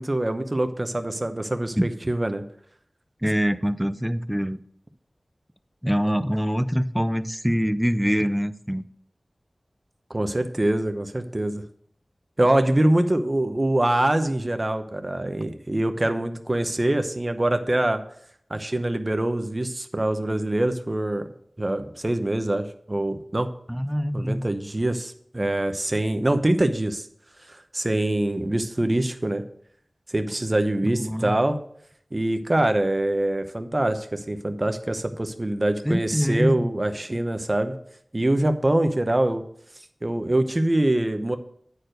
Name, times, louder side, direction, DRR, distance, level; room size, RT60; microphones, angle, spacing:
voice 1, 0.0-2.4 10.1-11.6 12.4-18.0 18.5-21.3 21.6-23.5 24.1-27.1 27.5-29.4 30.1-31.6 32.1-37.7 38.1-39.4 40.0-41.4, right 1 dB, 35° right, 8 dB, 0.8 m, -24 dB
voice 2, 3.2-4.6 5.8-8.8 23.7-24.5 30.8-31.4 35.8-36.7, equal, 5° right, 13 dB, 0.4 m, -24 dB
9.6 x 4.5 x 6.4 m, 0.66 s
wide cardioid pair, 60°, 0 cm